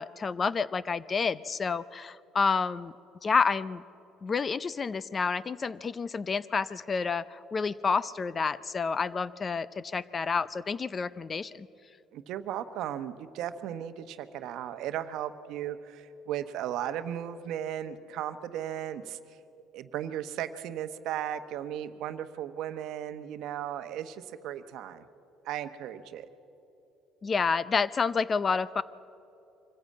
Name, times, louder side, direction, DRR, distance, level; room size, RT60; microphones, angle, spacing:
voice 1, 0.0-2.9 3.2-3.8 4.2-11.7 27.2-28.8, left 5 dB, 30° left, 18 dB, 0.5 m, -29 dB
voice 2, 12.1-19.4 19.7-25.0 25.4-26.3, right 10 dB, 70° right, 10 dB, 0.9 m, -36 dB
24.5 x 14.5 x 8.5 m, 3.0 s
cardioid pair, 115°, 0 cm